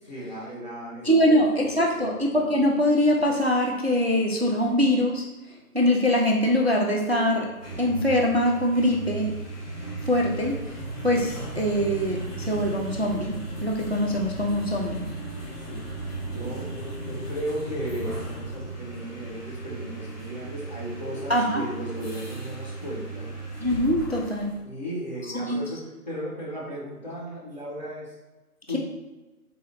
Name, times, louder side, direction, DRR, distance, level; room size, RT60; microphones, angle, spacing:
voice 1, 0.0-2.2 15.7-15.8 16.2-23.3 24.6-28.1 28.7-28.8, equal, 30° left, -7 dB, 1.1 m, -36 dB
voice 2, 1.0-5.2 5.7-7.5 7.8-9.3 10.0-10.6 11.0-15.0 21.3-21.6 23.6-24.5 25.3-25.6, equal, 45° right, 0 dB, 0.4 m, -23 dB
sound 1, 7.5-24.6, right 2 dB, 90° left, 1.4 m, -36 dB
3.9 x 3.0 x 2.9 m, 1.1 s
figure-of-eight pair, 160°, 46 cm